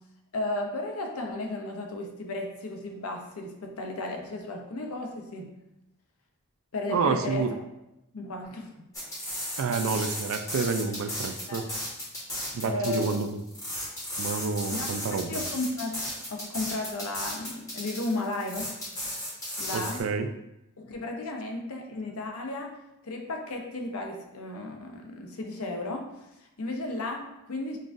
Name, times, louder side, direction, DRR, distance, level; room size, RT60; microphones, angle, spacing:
voice 1, 0.3-5.5 6.7-7.5 8.1-8.9 11.5-11.7 12.6-13.2 14.7-16.0 16.3-18.7 19.6-20.0 20.8-22.8 23.0-26.1 26.4-27.8, left 2 dB, 75° left, 2 dB, 0.7 m, -34 dB
voice 2, 6.9-7.5 9.6-11.7 12.5-13.3 14.2-15.4 19.7-20.3, right 5 dB, 65° right, 7 dB, 0.3 m, -29 dB
sound 1, 8.9-20.0, left 1 dB, 15° left, 1.1 m, -35 dB
5.4 x 2.4 x 2.5 m, 0.89 s
head